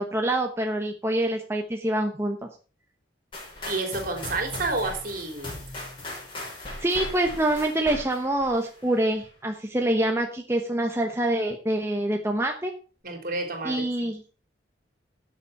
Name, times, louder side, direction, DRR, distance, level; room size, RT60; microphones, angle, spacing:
voice 1, 0.0-2.4 6.8-12.7 13.6-14.3, right 1 dB, 15° right, 3 dB, 1.1 m, -26 dB
sound 1, 3.3-9.2, left 1 dB, 30° left, 5.1 m, -38 dB
voice 2, 3.6-5.5 13.0-14.1, right 3 dB, 50° right, 5 dB, 3.5 m, -30 dB
12.0 x 7.1 x 5.7 m, 0.36 s
head